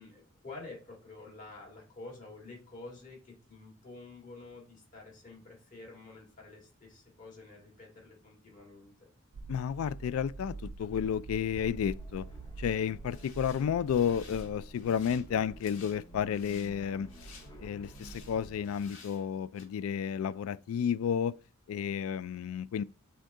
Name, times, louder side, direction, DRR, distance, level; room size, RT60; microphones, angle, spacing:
voice 1, 0.0-9.1, left 3 dB, 40° left, 1.9 m, -49 dB
sound 1, 9.3-18.6, right 3 dB, 85° right, 0.4 m, -47 dB
voice 2, 9.5-12.3 12.6-17.1 17.6-21.3 21.7-22.8, left 8 dB, 90° left, 0.3 m, -32 dB
sound 2, 11.5-19.1, left 1 dB, 20° left, 0.5 m, -55 dB
sound 3, 13.0-14.5 14.8-15.2 15.6-16.0 16.3-16.7 17.1-17.5 17.8-18.4 18.6-19.3 19.5-19.6, left 5 dB, 75° left, 1.4 m, -54 dB
6.4 x 2.3 x 3.6 m
head